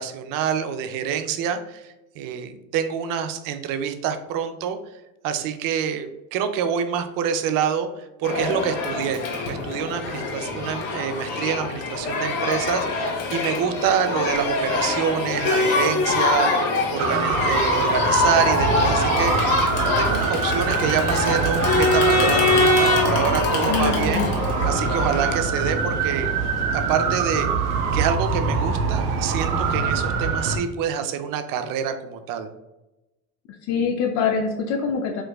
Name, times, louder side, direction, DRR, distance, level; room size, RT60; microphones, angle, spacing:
voice 1, 0.0-4.8 5.2-19.6 20.0-24.3 24.7-26.4 26.7-27.5 27.9-32.5, right 8 dB, 50° right, 8 dB, 0.5 m, -27 dB
Crowd, 8.2-25.4, left 3 dB, 70° left, 1.1 m, -23 dB
sound 1, 17.0-30.6, right 5 dB, 90° right, 0.6 m, -24 dB
voice 2, 23.7-24.3 33.6-35.2, left 6 dB, 40° left, 1 dB, 0.5 m, -24 dB
4.5 x 2.2 x 2.3 m, 0.98 s
hypercardioid pair, 90°, 45 cm